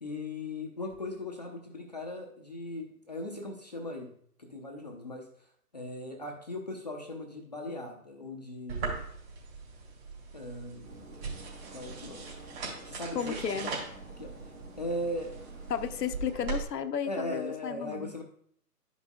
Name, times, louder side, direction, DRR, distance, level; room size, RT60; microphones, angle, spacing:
voice 1, 0.0-4.1 4.4-5.3 5.7-9.0 10.3-10.9 11.7-12.3 12.9-13.7 14.2-14.3 14.8-15.4 17.1-18.2, left 1 dB, 30° left, 1 dB, 0.5 m, -38 dB
sound 1, 8.7-16.6, right 4 dB, 35° right, 2.6 m, -40 dB
sound 2, 10.8-16.1, right 1 dB, 55° right, 2.8 m, -50 dB
voice 2, 13.1-13.7 15.7-18.1, left 7 dB, 80° left, 10 dB, 0.7 m, -33 dB
11.5 x 5.4 x 2.3 m, 0.63 s
hypercardioid pair, 150°, 48 cm